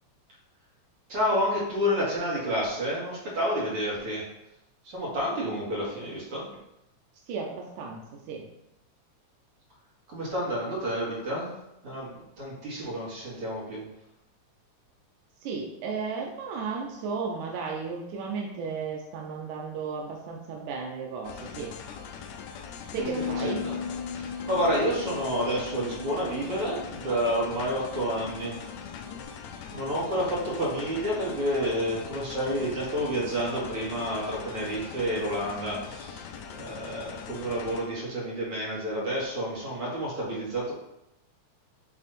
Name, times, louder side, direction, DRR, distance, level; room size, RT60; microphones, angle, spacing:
voice 1, 1.1-4.3 4.8-6.5 10.1-11.5 11.8-13.8 23.4-23.8 24.1-28.5 29.7-36.2 36.5-40.7, equal, 50° right, -7 dB, 3.2 m, -29 dB
voice 2, 7.3-8.0 8.3-8.4 15.4-21.8 22.9-23.6, right 5 dB, 90° right, 0 dB, 2.3 m, -34 dB
sound 1, 21.2-37.9, left 7 dB, 80° left, 1.8 m, -42 dB
Bass guitar, 23.0-29.2, left 6 dB, 55° left, 1.5 m, -38 dB
8.2 x 3.6 x 4.2 m, 0.86 s
omnidirectional pair, 3.4 m